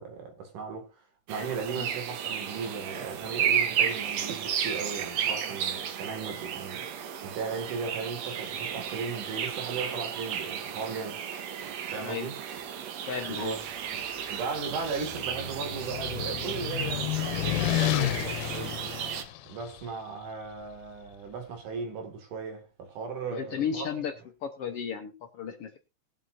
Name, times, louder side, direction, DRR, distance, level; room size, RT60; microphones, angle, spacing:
voice 1, 0.0-11.3 11.9-12.4 13.3-13.6 13.9-14.0 14.3-18.8 19.5-23.9, right 5 dB, 80° right, 3.7 m, -37 dB
sound 1, 1.3-19.2, right 8 dB, 65° right, 2.1 m, -33 dB
voice 2, 13.1-13.6 23.3-24.1 24.4-25.8, left 7 dB, 65° left, 1.5 m, -34 dB
sound 2, 14.6-19.8, left 14 dB, 85° left, 2.4 m, -31 dB
20.5 x 7.9 x 2.6 m
omnidirectional pair, 3.6 m